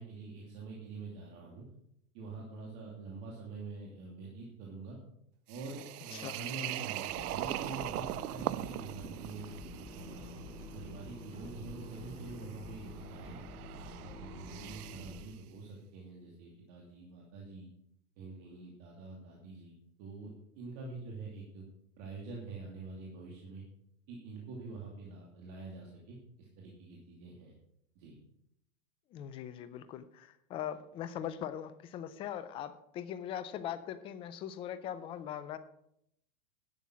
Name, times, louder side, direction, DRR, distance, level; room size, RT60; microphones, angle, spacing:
voice 1, 0.0-1.7 2.1-5.0 5.5-9.5 9.9-13.4 13.9-17.7 18.2-21.6 22.0-23.6 24.1-27.5 27.9-28.2, right 3 dB, 50° right, -2 dB, 2.7 m, -46 dB
sound 1, 5.5-15.3, right 15 dB, 85° right, 0.5 m, -42 dB
sound 2, 7.1-15.2, left 1 dB, 15° right, 4.5 m, -47 dB
voice 2, 29.1-35.6, left 10 dB, 15° left, 13 dB, 0.3 m, -41 dB
11.0 x 7.2 x 6.2 m, 0.76 s
hypercardioid pair, 120°, 44 cm